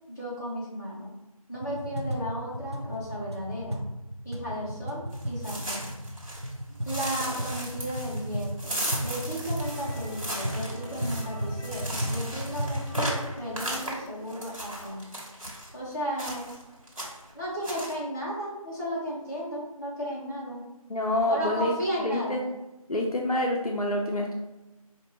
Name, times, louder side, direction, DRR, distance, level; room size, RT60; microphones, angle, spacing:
voice 1, 0.1-1.1 1.5-3.8 4.2-5.9 6.8-15.0 15.7-16.5 17.3-20.7 21.3-22.4, equal, 30° left, -9 dB, 1.4 m, -34 dB
sound 1, 1.5-13.2, equal, 45° right, 0.5 m, -34 dB
sound 2, 5.1-6.5 6.9-15.7 16.2-16.6 16.9-17.3 17.6-17.9, right 1 dB, 65° right, 1.4 m, -36 dB
sound 3, 9.6-16.3, left 2 dB, 10° right, 1.4 m, -49 dB
voice 2, 20.9-21.7 22.0-22.4 22.9-24.3, left 1 dB, 80° left, 1 dB, 0.6 m, -27 dB
5.0 x 2.6 x 3.0 m, 1.0 s
figure-of-eight pair, 170°, 19 cm